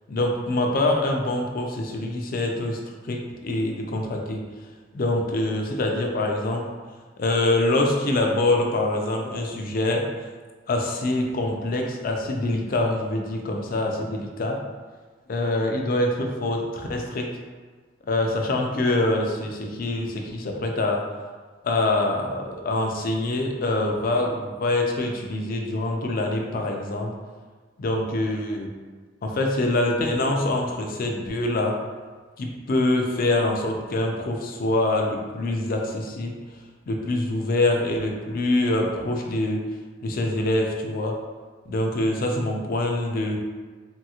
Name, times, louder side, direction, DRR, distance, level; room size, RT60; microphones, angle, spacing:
voice 1, 0.1-2.8 3.1-4.4 4.9-6.7 7.2-10.1 10.7-14.6 15.3-17.3 18.1-21.0 21.6-27.1 27.8-28.7 29.2-31.8 32.4-36.4 36.9-39.6 40.0-41.2 41.7-43.4, left 2 dB, 50° left, 2 dB, 0.4 m, -25 dB
3.3 x 2.8 x 2.3 m, 1.4 s
head